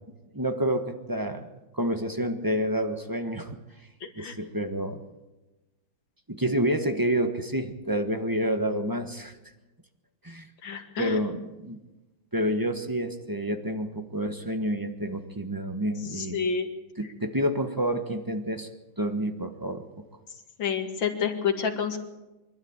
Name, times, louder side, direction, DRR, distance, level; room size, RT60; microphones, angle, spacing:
voice 1, 0.3-1.5 1.7-3.6 4.2-5.0 6.3-9.4 10.2-10.5 11.0-11.8 12.3-16.5 17.0-18.7 19.0-19.8, equal, 15° right, 7 dB, 0.9 m, -28 dB
voice 2, 4.0-4.4 10.6-11.2 16.1-16.7 20.6-22.0, left 6 dB, 60° left, 5 dB, 2.7 m, -29 dB
24.5 x 12.5 x 8.8 m, 1.1 s
omnidirectional pair, 2.4 m